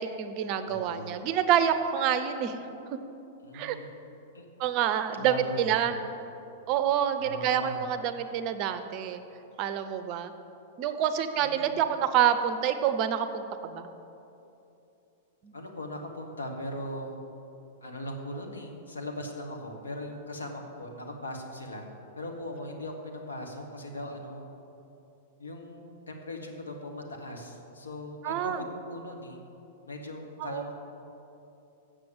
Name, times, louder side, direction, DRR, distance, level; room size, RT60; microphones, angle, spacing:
voice 1, 0.0-2.6 2.9-3.0 3.5-3.8 4.6-5.9 6.7-9.2 9.6-10.3 10.8-13.9 15.4-15.5 28.2-28.6 30.4-30.6, right 9 dB, 40° right, 10 dB, 0.6 m, -27 dB
voice 2, 0.6-1.1 3.4-3.9 4.3-4.4 5.1-6.0 7.2-7.8 11.4-11.8 15.5-17.2 17.8-21.9 22.2-24.4 25.4-29.4 29.9-30.8, left 1 dB, 80° left, 2 dB, 1.3 m, -39 dB
7.7 x 6.7 x 7.5 m, 2.9 s
figure-of-eight pair, 100°, 0 cm